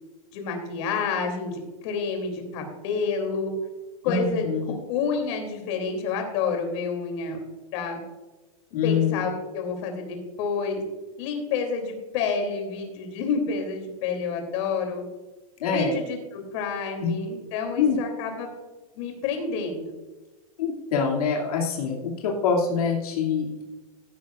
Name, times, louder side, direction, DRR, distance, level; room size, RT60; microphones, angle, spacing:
voice 1, 0.3-3.5 4.0-4.4 4.9-7.4 7.7-8.0 8.8-10.8 11.2-15.0 15.7-18.5 18.9-19.9, left 5 dB, 50° left, 3 dB, 3.1 m, -29 dB
voice 2, 4.0-4.6 8.7-9.2 15.6-15.9 17.0-17.1 17.8-18.0 20.6-23.5, left 6 dB, 80° left, -2 dB, 2.6 m, -24 dB
15.0 x 11.0 x 2.5 m, 1.2 s
supercardioid pair, 155°, 19 cm